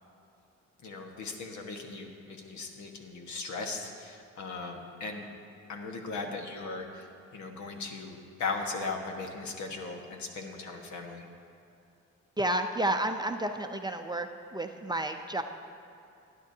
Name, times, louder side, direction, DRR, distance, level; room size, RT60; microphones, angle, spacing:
voice 1, 0.8-5.3 5.7-11.2, left 3 dB, 70° left, 3 dB, 1.5 m, -38 dB
voice 2, 12.4-14.3 14.5-15.4, right 1 dB, 15° right, 5 dB, 0.5 m, -30 dB
19.0 x 9.8 x 2.8 m, 2.7 s
cardioid pair, 90°, 30 cm